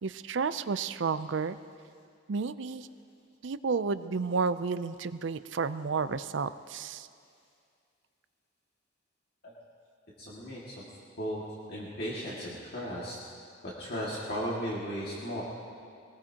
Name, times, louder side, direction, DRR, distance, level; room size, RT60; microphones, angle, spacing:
voice 1, 0.0-1.6 2.3-2.9 3.4-7.1, right 5 dB, 65° right, 13 dB, 0.5 m, -31 dB
voice 2, 10.2-10.7 11.2-11.4 11.7-13.2 13.8-15.4, equal, 55° left, -6 dB, 2.2 m, -35 dB
22.5 x 19.0 x 2.9 m, 2.3 s
head